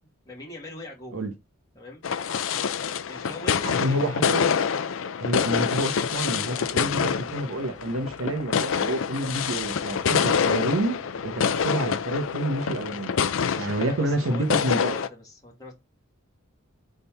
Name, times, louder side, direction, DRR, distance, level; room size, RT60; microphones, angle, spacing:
voice 1, 0.3-1.2 1.8-2.0 3.1-4.0 13.3-15.7, left 1 dB, 20° left, 1.9 m, -42 dB
sound 1, 2.0-15.1, left 7 dB, 65° left, 0.4 m, -26 dB
voice 2, 3.6-4.5 5.2-11.0 11.2-13.1 13.6-14.9, right 1 dB, 75° right, 0.9 m, -28 dB
sound 2, 5.2-14.5, right 2 dB, 5° right, 1.8 m, -50 dB
4.2 x 3.8 x 3.4 m
head